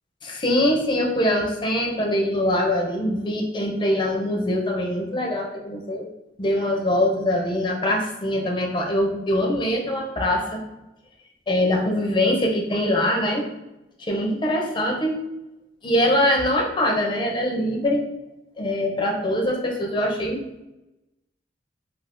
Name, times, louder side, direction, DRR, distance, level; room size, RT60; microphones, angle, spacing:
voice 1, 0.2-6.1 6.4-10.6 11.5-13.5 14.0-15.2 15.8-18.1 18.6-20.4, left 1 dB, 25° left, 0 dB, 0.5 m, -23 dB
2.4 x 2.4 x 3.4 m, 0.94 s
head